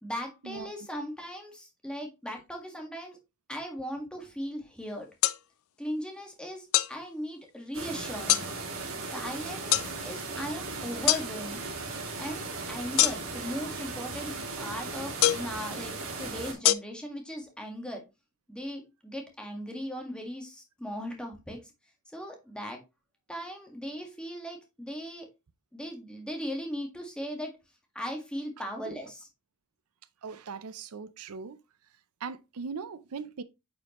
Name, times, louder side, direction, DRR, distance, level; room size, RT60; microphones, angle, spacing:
voice 1, 0.0-3.2 3.5-5.1 5.8-8.5 9.1-11.6 12.2-18.0 18.5-21.6 22.1-22.8 23.3-25.3 25.7-27.5 28.0-29.3, equal, 5° left, 1.7 m, -38 dB
sound 1, 5.2-5.4 6.7-6.9 8.3-8.5 9.7-9.9 11.1-11.2 13.0-13.4 15.2-15.5 16.6-16.7, left 14 dB, 65° left, 0.4 m, -23 dB
sound 2, 7.7-16.5, right 3 dB, 65° right, 2.6 m, -37 dB
voice 2, 30.2-31.6 32.2-33.4, right 5 dB, 85° right, 0.6 m, -39 dB
9.3 x 4.9 x 3.0 m
head